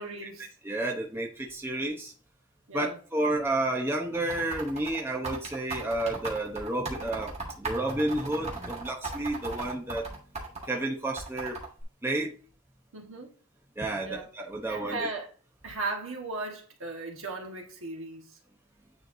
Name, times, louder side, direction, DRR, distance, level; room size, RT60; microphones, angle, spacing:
voice 1, 0.0-0.5 2.7-3.0 12.9-13.3 14.0-14.3 14.6-15.3 15.6-18.4, right 3 dB, 60° right, 1.4 m, -37 dB
voice 2, 0.6-2.1 2.7-10.1 10.7-11.6 12.0-12.3 13.8-15.1, right 1 dB, 10° right, 0.7 m, -31 dB
sound 1, 4.1-10.7 11.2-11.8, right 3 dB, 30° right, 1.5 m, -37 dB
9.3 x 4.5 x 2.6 m
head